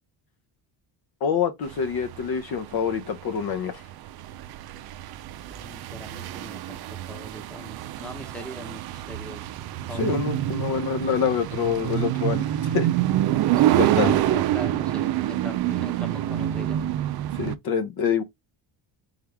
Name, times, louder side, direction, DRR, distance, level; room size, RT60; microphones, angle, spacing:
voice 1, 1.2-3.8 9.9-12.4 12.7-12.9 13.8-14.2 17.3-18.2, left 7 dB, 50° left, 0.8 m, -26 dB
sound 1, 1.7-17.5, right 13 dB, 55° right, 0.5 m, -26 dB
voice 2, 5.5-6.8 7.1-9.5 9.9-10.2 13.6-16.8, left 1 dB, ahead, 1.1 m, -40 dB
3.6 x 3.3 x 3.4 m
cardioid pair, 125°, 47 cm